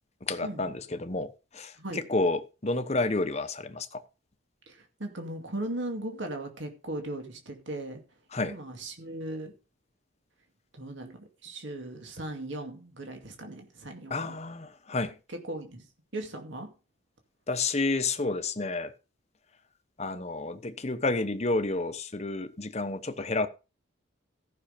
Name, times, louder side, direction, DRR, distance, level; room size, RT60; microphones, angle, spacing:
voice 1, 0.2-4.0 8.3-8.6 14.1-15.2 17.5-18.9 20.0-23.5, left 3 dB, 35° left, 0.9 m, -30 dB
voice 2, 4.7-8.0 8.4-9.6 10.7-14.4 15.3-15.9 16.1-16.7, right 1 dB, 65° right, 2.3 m, -38 dB
14.5 x 6.3 x 5.1 m
head